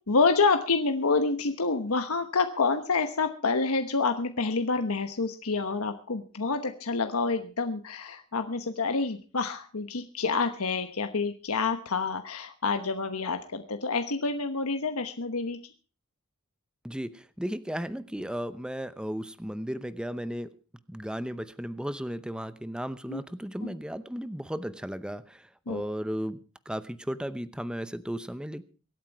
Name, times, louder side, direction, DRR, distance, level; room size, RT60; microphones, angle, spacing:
voice 1, 0.1-15.6 23.1-23.2 23.6-23.7 25.7-25.8, left 4 dB, 85° left, 7 dB, 1.1 m, -28 dB
voice 2, 16.8-20.5 20.9-26.4 26.7-28.6, equal, 5° right, 14 dB, 0.7 m, -35 dB
24.0 x 9.0 x 4.6 m, 0.35 s
head